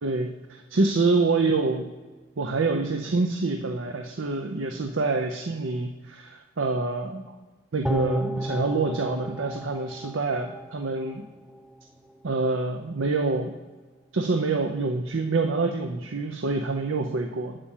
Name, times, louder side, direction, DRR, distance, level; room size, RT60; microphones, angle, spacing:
voice 1, 0.0-1.9 2.4-7.3 7.7-11.2 12.2-13.5 14.1-17.6, right 3 dB, 80° right, 4 dB, 0.7 m, -26 dB
sound 1, 7.8-11.2 11.5-11.6, right 1 dB, ahead, 0.4 m, -32 dB
8.5 x 5.1 x 7.2 m, 1.3 s
head